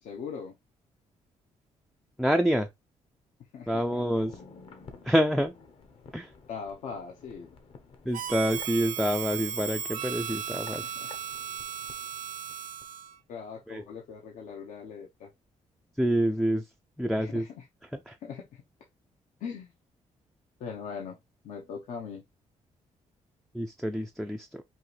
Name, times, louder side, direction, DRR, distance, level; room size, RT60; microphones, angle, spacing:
voice 1, 0.0-0.6 3.5-4.2 6.5-7.6 11.0-11.1 13.3-15.3 17.2-17.7 18.2-18.6 19.4-19.7 20.6-21.2 21.4-22.2, left 6 dB, 75° left, 0.9 m, -40 dB
voice 2, 2.2-2.7 3.7-4.4 5.0-5.5 6.1-6.3 8.1-10.9 13.7-13.8 16.0-16.7 17.0-17.5 18.1-18.2 23.5-24.6, equal, ahead, 0.3 m, -27 dB
sound 1, 3.9-12.9 13.2-13.3, left 4 dB, 45° left, 0.8 m, -52 dB
Harmonica, 8.1-13.2, right 8 dB, 80° right, 0.6 m, -36 dB
5.6 x 2.5 x 3.2 m
cardioid pair, 160°, 13 cm